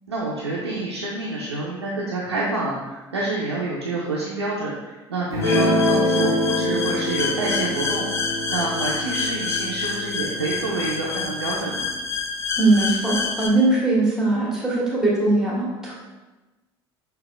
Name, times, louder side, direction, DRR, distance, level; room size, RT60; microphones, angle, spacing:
voice 1, 0.1-11.9, right 2 dB, 80° right, -5 dB, 0.6 m, -28 dB
Guitar, 5.3-11.9, left 1 dB, 85° left, 0.6 m, -26 dB
sound 1, 5.4-13.5, left 4 dB, 20° left, 0.5 m, -28 dB
voice 2, 12.6-15.9, right 2 dB, 5° right, -4 dB, 1.4 m, -20 dB
5.6 x 2.8 x 2.4 m, 1.1 s
figure-of-eight pair, 60°, 14 cm